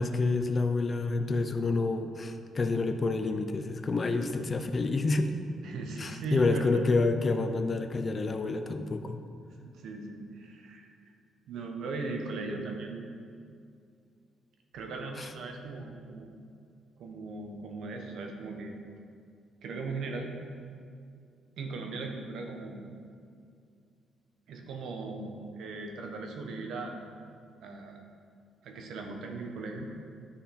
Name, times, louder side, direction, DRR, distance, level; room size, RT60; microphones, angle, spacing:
voice 1, 0.0-5.3 6.0-9.2 15.2-15.3, left 3 dB, 35° left, 7 dB, 0.6 m, -28 dB
voice 2, 5.6-6.8 9.6-10.9 11.5-13.0 14.7-16.3 17.0-18.7 19.6-20.3 21.6-22.8 24.5-27.0 27.6-28.0 28.6-29.9, right 3 dB, 75° right, 3 dB, 1.1 m, -38 dB
9.9 x 5.6 x 4.3 m, 2.3 s
cardioid pair, 90°, 0 cm